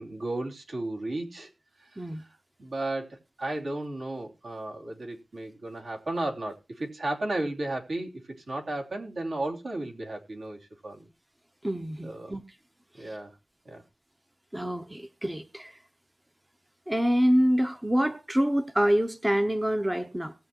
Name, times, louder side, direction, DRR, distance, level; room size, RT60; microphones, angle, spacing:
voice 1, 0.0-1.5 1.8-11.1 12.0-12.4 12.9-13.4 13.6-13.8, right 2 dB, 70° right, 3.0 m, -34 dB
voice 2, 11.6-12.4 13.0-13.2 14.5-15.8 16.9-20.3, equal, 10° right, 0.7 m, -26 dB
19.0 x 7.8 x 2.9 m
wide cardioid pair, 120°, 0 cm